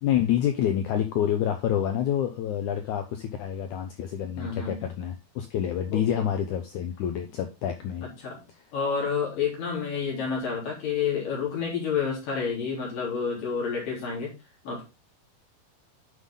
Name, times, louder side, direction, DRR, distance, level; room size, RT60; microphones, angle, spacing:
voice 1, 0.0-8.1 8.5-8.6, left 10 dB, 80° left, 6 dB, 1.7 m, -28 dB
voice 2, 4.4-4.8 5.9-6.3 8.2-8.4 8.7-14.3 14.6-14.8, left 6 dB, 60° left, -3 dB, 5.0 m, -29 dB
9.6 x 5.8 x 3.8 m, 0.28 s
omnidirectional pair, 4.6 m